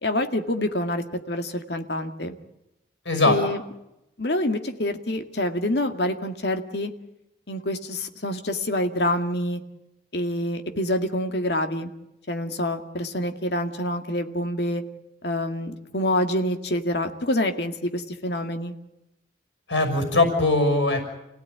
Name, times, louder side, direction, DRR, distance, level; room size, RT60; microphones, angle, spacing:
voice 1, 0.0-2.4 3.3-3.6 4.2-6.9 7.5-9.6 10.1-11.9 12.3-14.8 15.2-18.7, left 1 dB, 65° left, 6 dB, 2.1 m, -26 dB
voice 2, 3.0-3.4 19.7-21.0, left 2 dB, 90° left, 5 dB, 6.1 m, -20 dB
29.0 x 17.0 x 9.5 m, 0.89 s
head